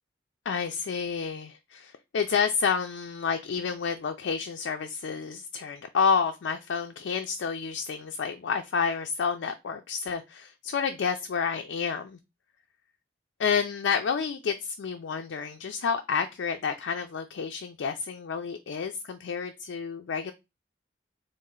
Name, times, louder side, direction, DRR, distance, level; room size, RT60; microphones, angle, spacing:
voice 1, 0.5-12.2 13.4-20.3, left 6 dB, 85° left, 0.4 m, -29 dB
4.1 x 2.0 x 3.7 m
head